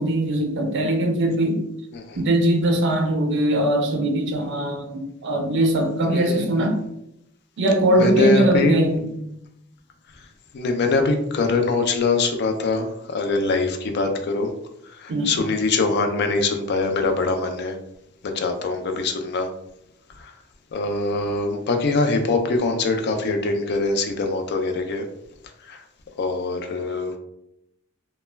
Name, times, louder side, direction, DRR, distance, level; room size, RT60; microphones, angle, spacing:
voice 1, 0.0-1.6 2.2-6.8 7.6-9.1 15.1-15.3, right 1 dB, 60° right, 3 dB, 0.4 m, -21 dB
voice 2, 6.1-6.7 7.9-8.8 10.5-14.5 14.9-17.8 18.2-19.5 20.2-20.3 20.7-25.0 25.6-25.8 26.2-27.1, left 3 dB, 55° left, 6 dB, 0.4 m, -23 dB
2.1 x 2.1 x 3.2 m, 0.82 s
head